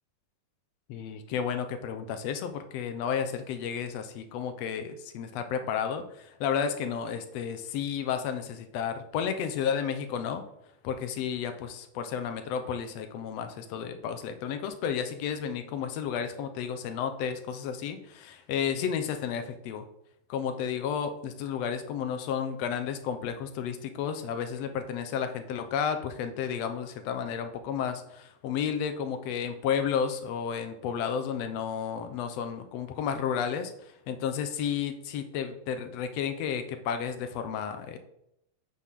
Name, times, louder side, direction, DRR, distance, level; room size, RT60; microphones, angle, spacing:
voice 1, 0.9-10.4 10.8-19.8 20.3-38.0, left 7 dB, 70° left, 7 dB, 1.8 m, -32 dB
8.3 x 5.9 x 3.7 m, 0.78 s
omnidirectional pair, 3.4 m